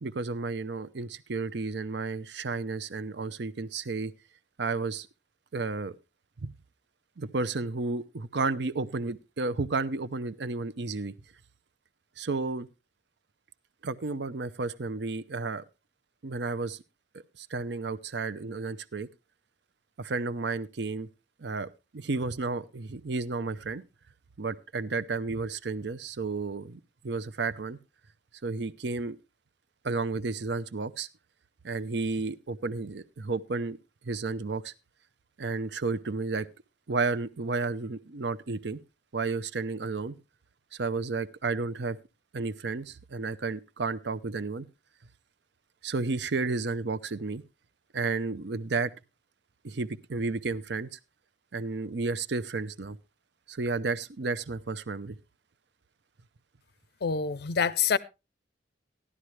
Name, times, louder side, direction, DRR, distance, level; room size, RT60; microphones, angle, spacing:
voice 1, 0.0-4.1 4.6-5.1 5.5-5.9 6.4-6.5 7.2-11.1 12.2-12.7 13.8-15.6 16.2-16.8 17.4-19.1 20.0-21.1 21.4-21.7 21.9-23.8 24.4-27.8 28.4-29.2 29.8-31.1 31.6-33.8 34.0-34.7 35.4-36.5 36.9-38.8 39.1-40.2 40.7-42.0 42.3-44.7 45.8-47.4 47.9-48.9 49.6-51.0 51.5-53.0 53.5-55.2, right 3 dB, 65° right, 0.6 m, -32 dB
voice 2, 57.0-58.0, left 6 dB, 60° left, 0.5 m, -26 dB
15.0 x 11.0 x 3.2 m
head